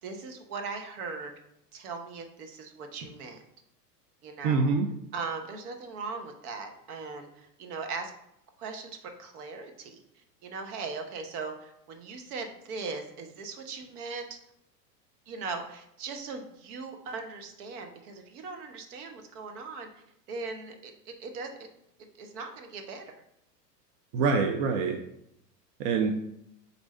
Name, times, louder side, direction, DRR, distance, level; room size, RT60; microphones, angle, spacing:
voice 1, 0.0-1.3 1.7-3.4 4.2-4.7 5.1-8.1 8.6-10.0 10.4-14.4 15.3-21.5 22.2-23.0, right 4 dB, 65° right, 6 dB, 0.9 m, -39 dB
voice 2, 4.4-4.9 24.1-25.0 25.8-26.1, right 4 dB, 45° right, 3 dB, 0.5 m, -25 dB
4.6 x 2.7 x 4.1 m, 0.77 s
hypercardioid pair, 105°, 49 cm